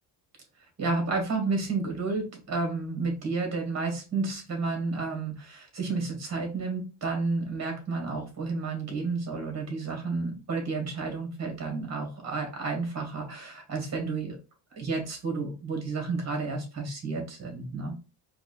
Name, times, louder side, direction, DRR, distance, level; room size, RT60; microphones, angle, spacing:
voice 1, 0.8-14.4 14.7-17.9, right 3 dB, 35° right, 2 dB, 1.6 m, -31 dB
4.7 x 2.3 x 2.5 m, 0.32 s
cardioid pair, 120°, 44 cm